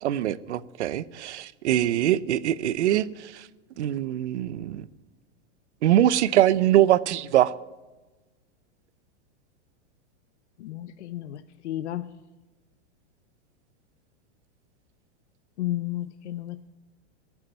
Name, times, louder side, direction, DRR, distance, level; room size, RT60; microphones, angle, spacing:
voice 1, 0.0-3.5 3.8-4.9 5.8-7.5, right 12 dB, 90° right, 18 dB, 0.8 m, -23 dB
voice 2, 10.6-12.1 15.6-16.7, left 14 dB, 85° left, 12 dB, 0.7 m, -33 dB
17.5 x 7.4 x 9.2 m, 1.2 s
supercardioid pair, 175°, 34 cm